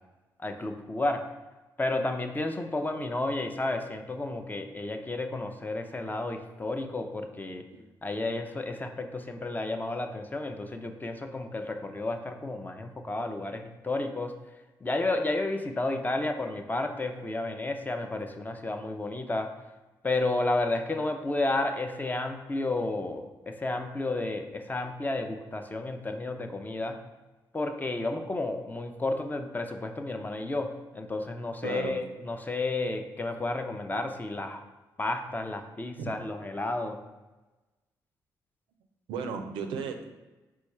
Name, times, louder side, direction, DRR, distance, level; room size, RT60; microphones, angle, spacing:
voice 1, 0.4-1.2 1.8-7.6 8.0-14.3 14.8-19.5 20.0-27.0 27.5-34.6 35.0-37.0, left 2 dB, 20° left, 5 dB, 0.5 m, -32 dB
voice 2, 31.6-31.9 36.0-36.1 39.1-40.1, right 6 dB, 90° right, 6 dB, 0.4 m, -34 dB
4.2 x 2.3 x 4.5 m, 1.1 s
supercardioid pair, 60°, 8 cm